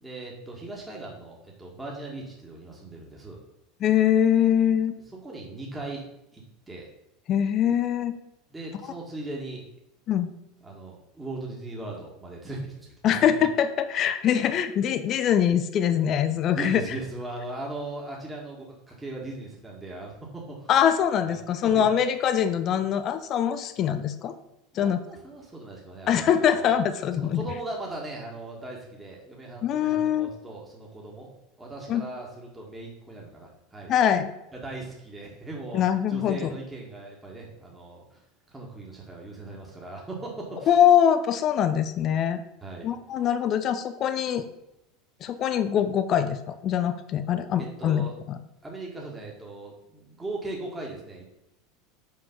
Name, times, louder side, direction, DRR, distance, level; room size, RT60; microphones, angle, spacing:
voice 1, 0.0-3.4 5.1-6.1 6.3-6.9 8.5-9.7 10.6-13.2 16.5-20.7 21.3-21.4 21.6-21.9 24.7-26.8 27.2-31.3 31.6-33.9 34.5-35.8 36.1-38.2 38.5-40.7 42.6-42.9 47.6-48.2 48.6-51.4, right 2 dB, 15° right, -2 dB, 1.9 m, -38 dB
voice 2, 3.8-4.9 7.3-8.1 10.1-10.3 13.0-16.8 20.7-24.3 24.7-25.0 26.1-27.4 29.6-30.3 31.9-32.1 33.9-34.3 35.7-36.5 40.7-42.4 42.8-44.4 45.2-48.4, left 9 dB, 45° left, 10 dB, 0.5 m, -23 dB
5.7 x 5.1 x 5.3 m, 0.87 s
hypercardioid pair, 80°, 0 cm